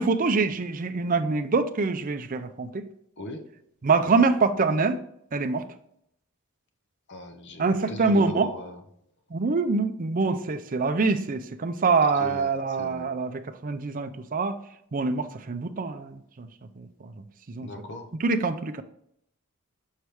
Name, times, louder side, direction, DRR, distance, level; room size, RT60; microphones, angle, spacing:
voice 1, 0.0-2.8 3.8-5.0 5.3-5.6 7.6-8.5 9.3-14.6 14.9-16.5 17.0-17.1 17.6-17.7 18.2-18.8, right 4 dB, 40° right, 8 dB, 0.5 m, -25 dB
voice 2, 7.1-8.8 12.2-12.5 12.8-13.1 17.6-18.1, left 1 dB, 55° left, 6 dB, 0.9 m, -38 dB
6.5 x 4.7 x 3.4 m, 0.74 s
head